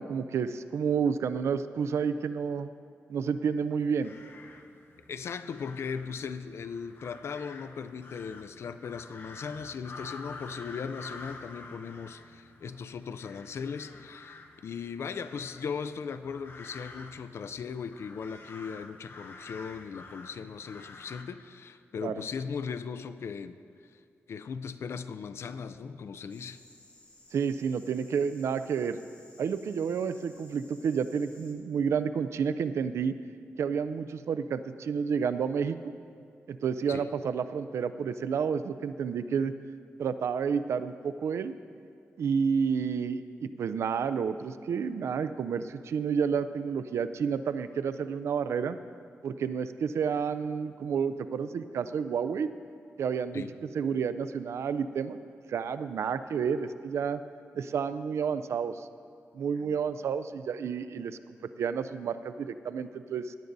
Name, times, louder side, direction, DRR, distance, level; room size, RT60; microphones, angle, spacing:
voice 1, 0.0-2.7 3.1-4.1 22.0-22.2 27.3-29.0 29.4-33.2 33.6-35.8 36.5-39.5 40.0-41.5 42.2-48.8 49.2-52.5 53.0-53.4 53.7-55.2 55.5-57.2 57.6-58.9 59.3-61.2 61.6-63.3, right 6 dB, 80° right, 12 dB, 0.4 m, -30 dB
sound 1, 3.8-21.2, left 3 dB, 55° left, 0.8 m, -49 dB
voice 2, 5.1-23.6 23.9-24.0 24.3-26.6 36.9-37.1 53.3-53.5, left 6 dB, 70° left, 13 dB, 0.4 m, -38 dB
sound 2, 26.3-31.5, left 2 dB, 30° left, 1.6 m, -57 dB
16.5 x 11.0 x 2.6 m, 2.4 s
cardioid pair, 90°, 5 cm